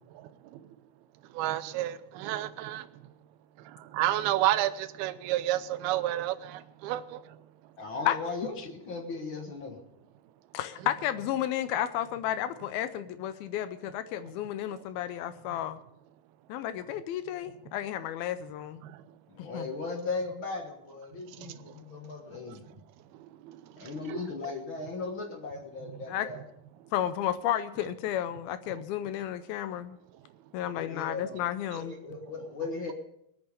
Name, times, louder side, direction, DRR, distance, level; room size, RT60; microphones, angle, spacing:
voice 1, 1.3-2.9 3.7-7.2 18.8-19.0 21.5-21.6 23.4-23.6 24.1-24.2, right 14 dB, 80° right, 2.5 m, -30 dB
voice 2, 7.8-9.8 19.3-22.7 23.8-26.4 30.7-31.5 31.7-32.9, left 3 dB, 65° left, 1.2 m, -37 dB
voice 3, 10.5-15.8 16.5-18.8 19.4-19.7 26.1-26.3 26.9-30.0 30.5-31.9, left 11 dB, 80° left, 2.3 m, -32 dB
21.0 x 8.9 x 5.2 m
omnidirectional pair, 4.7 m